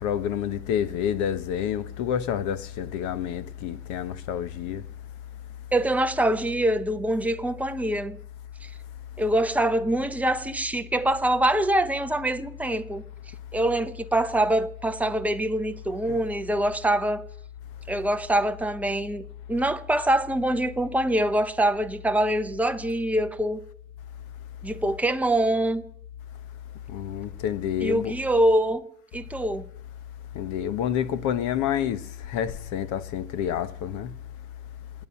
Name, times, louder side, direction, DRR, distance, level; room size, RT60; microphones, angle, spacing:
voice 1, 0.0-4.8 16.1-16.2 26.9-28.1 30.3-34.1, left 9 dB, 45° left, 1.2 m, -28 dB
voice 2, 5.7-8.2 9.2-13.0 13.5-17.2 17.9-19.2 19.5-23.6 24.6-25.8 27.8-28.9 29.1-29.7, right 1 dB, 5° right, 0.7 m, -24 dB
27.0 x 9.4 x 5.6 m
supercardioid pair, 135°, 41 cm